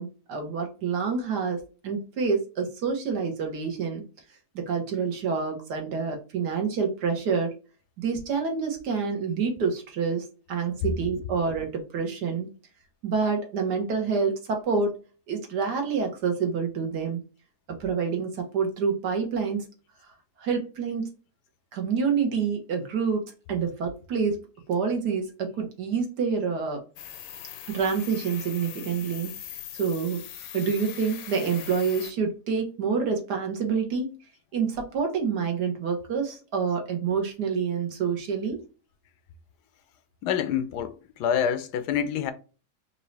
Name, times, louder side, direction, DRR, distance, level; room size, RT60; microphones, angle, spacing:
voice 1, 0.0-4.0 4.6-7.5 8.0-12.5 13.0-14.9 15.3-17.2 17.7-19.7 20.4-21.1 21.7-26.9 27.7-30.3 30.5-34.1 34.5-38.6, right 5 dB, 85° right, 1.7 m, -27 dB
sound 1, 27.0-32.1, left 10 dB, 70° left, 0.9 m, -41 dB
voice 2, 40.2-42.3, left 8 dB, 90° left, 1.2 m, -27 dB
4.6 x 2.6 x 3.2 m
omnidirectional pair, 1.7 m